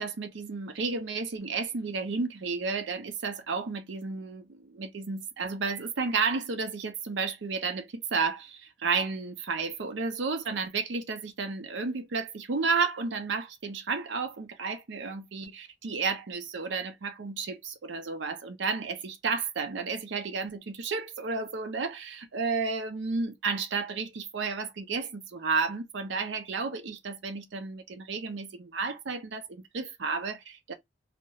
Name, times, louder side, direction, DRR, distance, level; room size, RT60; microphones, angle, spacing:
voice 1, 0.0-30.7, right 4 dB, 75° right, 0.5 m, -32 dB
2.3 x 2.1 x 2.8 m
head